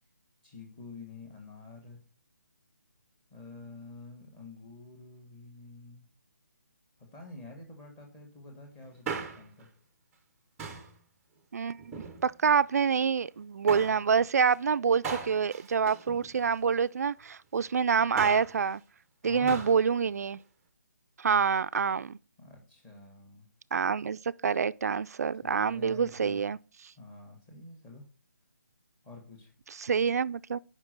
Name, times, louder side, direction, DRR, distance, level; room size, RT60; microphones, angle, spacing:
voice 1, 0.4-2.0 3.3-6.0 7.0-9.7 19.2-19.6 22.4-23.5 25.4-26.5 27.0-28.0 29.0-29.5, left 3 dB, 10° left, 1.5 m, -48 dB
Male speech man speaking, 8.8-9.6 10.6-11.0 11.8-12.6 13.7-14.0 15.0-16.7 17.9-18.6 19.5-19.8 20.1-20.2, right 5 dB, 10° right, 0.6 m, -38 dB
voice 2, 11.5-11.9 12.2-18.8 19.2-20.4 21.2-22.2 23.7-26.6 29.7-30.6, right 6 dB, 60° right, 0.3 m, -27 dB
5.2 x 5.2 x 6.5 m
hypercardioid pair, 165°, 9 cm